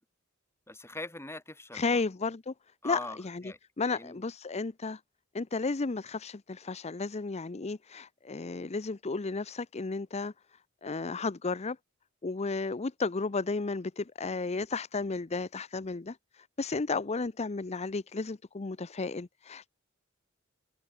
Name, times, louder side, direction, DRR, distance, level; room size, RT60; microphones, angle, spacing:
voice 1, 0.7-2.0 2.8-3.2 3.4-3.6 3.9-4.2, left 2 dB, 15° left, 4.4 m, -41 dB
voice 2, 1.7-2.5 2.8-5.0 5.3-10.3 10.8-11.8 12.2-19.7, left 3 dB, 30° left, 0.6 m, -33 dB
open air
head